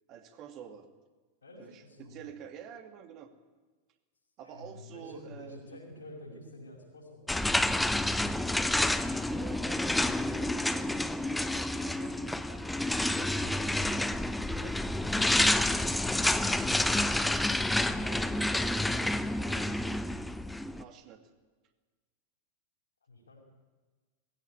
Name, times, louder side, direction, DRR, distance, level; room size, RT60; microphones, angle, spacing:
voice 1, 0.1-0.9 1.6-3.3 4.4-5.8 8.5-12.7 13.2-14.2 14.6-15.4 18.0-20.2 20.7-21.3, right 8 dB, 35° right, 7 dB, 2.3 m, -49 dB
voice 2, 1.4-2.3 4.4-7.3 23.1-23.4, left 1 dB, 75° left, -5 dB, 5.4 m, -49 dB
sound 1, 7.3-20.8, left 1 dB, 5° left, 0.9 m, -29 dB
20.0 x 16.0 x 9.8 m, 1.3 s
figure-of-eight pair, 90°, 0 cm